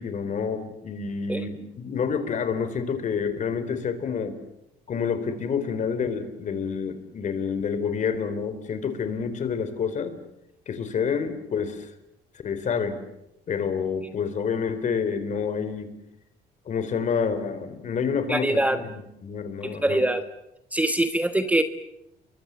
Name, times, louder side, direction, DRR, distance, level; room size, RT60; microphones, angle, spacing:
voice 1, 0.0-4.4 4.9-10.2 10.7-11.9 12.3-13.0 13.5-16.0 16.7-20.0, left 6 dB, 45° left, 11 dB, 4.0 m, -28 dB
voice 2, 18.3-18.8 19.6-20.2 20.7-21.6, right 1 dB, 10° right, 9 dB, 1.4 m, -23 dB
29.5 x 23.5 x 7.7 m, 0.84 s
cardioid pair, 110°, 17 cm